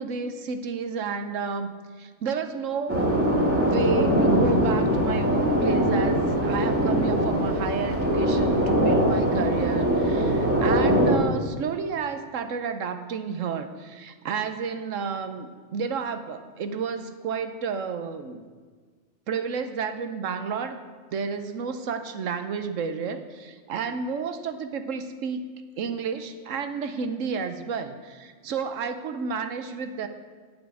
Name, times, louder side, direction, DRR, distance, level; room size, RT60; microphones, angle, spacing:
voice 1, 0.0-3.3 3.7-18.4 19.3-20.8 21.1-25.4 25.8-30.1, right 5 dB, 75° right, 9 dB, 1.1 m, -31 dB
sound 1, 2.9-11.1, equal, 10° right, 1.6 m, -22 dB
8.4 x 6.2 x 8.3 m, 1.5 s
omnidirectional pair, 1.4 m